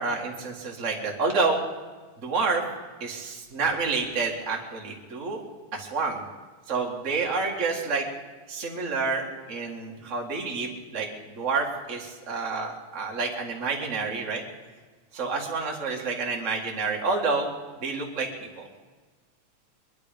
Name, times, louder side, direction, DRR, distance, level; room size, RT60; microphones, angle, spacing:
voice 1, 0.0-1.6 2.2-2.6 3.0-5.4 5.7-6.2 6.7-8.0 8.5-14.4 15.1-17.5 17.8-18.3 18.6-18.7, right 4 dB, 30° right, -1 dB, 1.9 m, -28 dB
22.5 x 11.5 x 5.2 m, 1.4 s
omnidirectional pair, 3.4 m